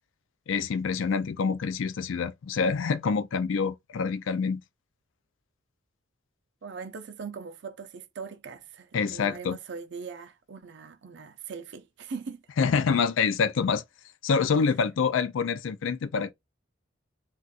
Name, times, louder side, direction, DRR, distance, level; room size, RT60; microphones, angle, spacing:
voice 1, 0.5-4.6 8.9-9.6 12.6-13.8 14.2-16.3, left 5 dB, 70° left, 0.4 m, -26 dB
voice 2, 6.6-12.4, right 5 dB, 60° right, 0.5 m, -40 dB
2.4 x 2.4 x 3.9 m
head